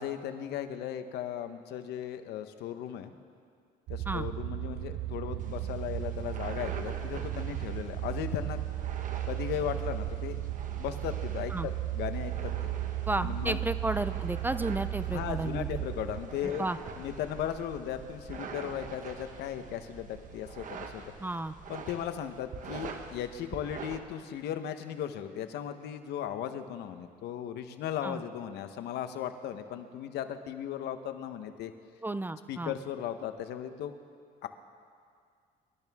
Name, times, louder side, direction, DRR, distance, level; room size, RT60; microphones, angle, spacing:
voice 1, 0.0-3.1 3.9-8.6 9.3-10.4 10.7-12.5 13.2-13.6 15.1-16.7 17.0-21.0 21.7-31.7 32.5-33.9 34.4-34.5, left 10 dB, 80° left, 9 dB, 1.0 m, -36 dB
sound 1, 3.9-16.2, right 14 dB, 70° right, 0.6 m, -35 dB
sound 2, 5.4-24.0, right 5 dB, 50° right, 1.4 m, -44 dB
voice 2, 13.1-15.8 16.6-16.8 21.2-21.5 28.0-28.2 32.0-32.7, right 2 dB, 10° right, 12 dB, 0.5 m, -32 dB
25.0 x 12.5 x 3.6 m, 2.2 s
cardioid pair, 110°, 17 cm